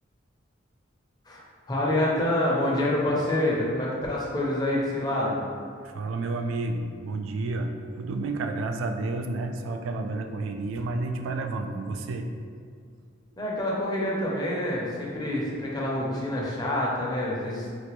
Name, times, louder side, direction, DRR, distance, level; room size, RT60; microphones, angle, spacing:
voice 1, 1.7-5.4 13.4-17.8, left 1 dB, 20° left, -5 dB, 0.6 m, -27 dB
voice 2, 5.8-12.3, right 2 dB, 85° right, 5 dB, 0.3 m, -30 dB
3.9 x 2.1 x 3.0 m, 2.1 s
head